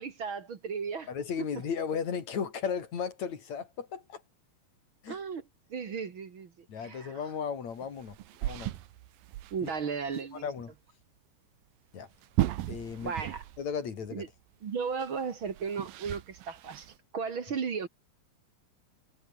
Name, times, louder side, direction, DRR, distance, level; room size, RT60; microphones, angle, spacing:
voice 1, 0.0-1.1 5.1-5.4 5.7-6.5 6.8-7.2 9.5-10.5 13.0-13.4 14.1-14.3 14.6-17.9, right 6 dB, 45° right, 2.1 m, -35 dB
voice 2, 1.1-4.2 5.0-5.2 6.7-8.2 8.4-8.7 9.6-9.7 10.3-10.7 11.9-12.1 12.7-13.1 13.6-14.3, left 6 dB, 55° left, 4.1 m, -35 dB
sound 1, 7.8-9.8 10.1-10.2 10.6-10.7 12.1-13.7 14.0-14.1 15.0-17.0, right 14 dB, 80° right, 2.8 m, -36 dB
omnidirectional pair, 4.0 m